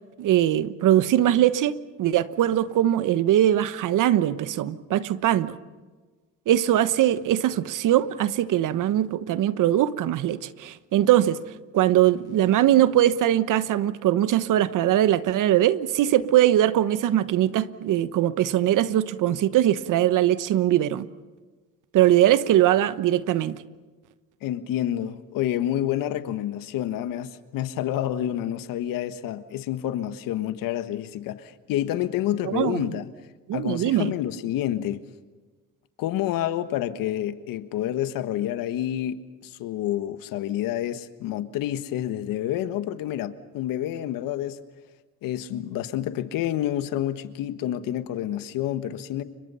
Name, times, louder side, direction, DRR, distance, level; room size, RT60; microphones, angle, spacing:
voice 1, 0.2-5.6 6.5-11.4 11.7-21.1 21.9-23.6 32.4-32.9 33.5-34.1, right 12 dB, 65° right, 1.2 m, -21 dB
voice 2, 24.4-33.1 33.5-35.0 36.0-44.6 45.2-49.2, left 12 dB, 75° left, 1.5 m, -28 dB
29.5 x 24.0 x 5.6 m
supercardioid pair, 75°, 33 cm